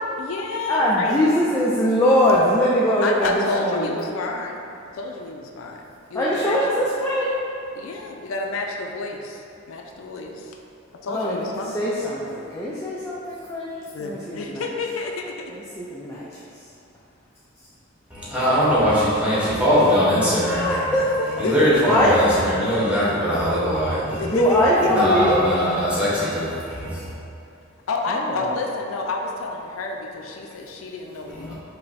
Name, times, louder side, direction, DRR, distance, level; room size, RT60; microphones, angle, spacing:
voice 1, 0.2-1.2 3.0-4.7 4.9-6.6 7.7-10.6 10.9-11.8 13.9-15.5 21.4-21.9 24.2-25.0 27.5-27.6 27.9-31.5, left 3 dB, 85° left, 2 dB, 0.4 m, -29 dB
voice 2, 0.7-3.9 6.1-7.3 11.1-11.4 11.7-13.7 14.0-14.6 15.5-16.2 20.2-21.3 21.8-22.2 24.2-25.4 28.1-28.5, equal, 15° left, -7 dB, 0.4 m, -21 dB
voice 3, 18.1-24.3 24.9-27.1 31.3-31.5, equal, 5° right, -9 dB, 1.1 m, -21 dB
5.5 x 2.1 x 4.0 m, 2.6 s
head